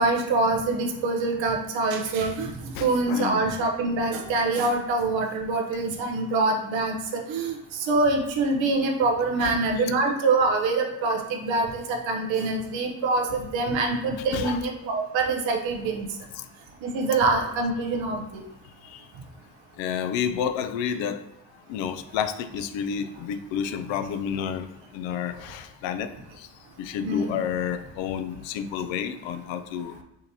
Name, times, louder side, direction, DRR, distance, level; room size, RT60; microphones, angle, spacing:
voice 1, 0.0-2.5 2.8-16.1 16.8-18.4 27.0-27.3, right 3 dB, 70° right, 2 dB, 0.9 m, -25 dB
voice 2, 2.7-3.4 9.4-9.6 14.3-14.6 16.3-16.4 18.8-19.1 19.8-21.2 21.7-26.5 26.8-29.9, left 8 dB, 70° left, 10 dB, 0.5 m, -30 dB
5.0 x 2.6 x 2.8 m, 0.86 s
hypercardioid pair, 45°, 47 cm